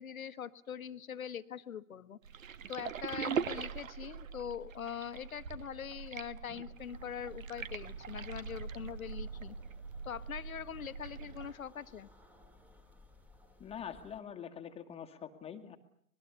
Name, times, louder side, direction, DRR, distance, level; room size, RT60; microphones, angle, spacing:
voice 1, 0.0-2.2 2.7-9.5 10.0-12.1, left 8 dB, 70° left, 13 dB, 1.5 m, -43 dB
sound 1, 2.2-11.5, right 6 dB, 65° right, 1.6 m, -42 dB
sound 2, 6.8-14.2, left 2 dB, 5° right, 2.4 m, -61 dB
voice 2, 13.6-15.8, left 8 dB, 15° left, 7 dB, 2.0 m, -44 dB
25.5 x 21.0 x 8.2 m, 0.66 s
figure-of-eight pair, 120°, 43 cm